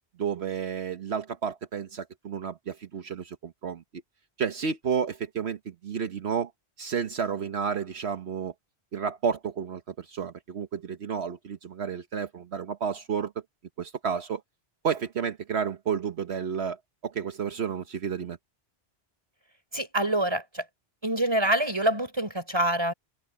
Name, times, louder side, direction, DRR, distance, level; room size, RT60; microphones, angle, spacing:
voice 1, 0.2-3.8 4.4-6.5 6.8-8.5 8.9-13.3 13.8-14.4 14.8-16.8 17.0-18.4, right 7 dB, 75° right, 1.3 m, -31 dB
voice 2, 19.7-20.6 21.0-22.9, right 1 dB, 25° right, 4.9 m, -26 dB
omnidirectional pair, 1.1 m